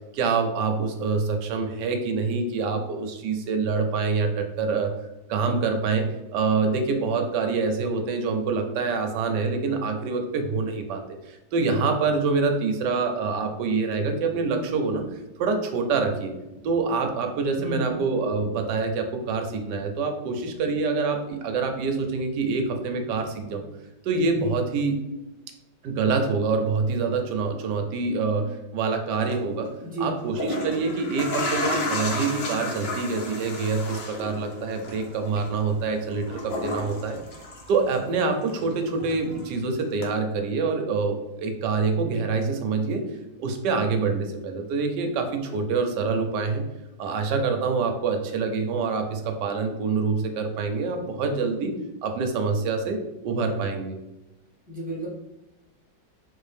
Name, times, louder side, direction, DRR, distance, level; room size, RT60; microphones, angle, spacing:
voice 1, 0.1-4.9 5.3-15.1 15.4-16.3 16.6-23.6 24.0-25.0 25.8-29.7 30.0-37.2 37.7-43.1 43.4-46.6 47.0-51.7 52.0-54.0, right 4 dB, 80° right, 5 dB, 1.2 m, -26 dB
voice 2, 17.6-17.9 29.8-30.1 54.7-55.1, right 1 dB, 15° right, -5 dB, 0.3 m, -32 dB
sound 1, 29.1-29.3 30.2-38.2 38.5-39.6 40.0-40.1, left 1 dB, 65° left, 0.6 m, -32 dB
4.1 x 2.7 x 3.3 m, 0.97 s
omnidirectional pair, 1.9 m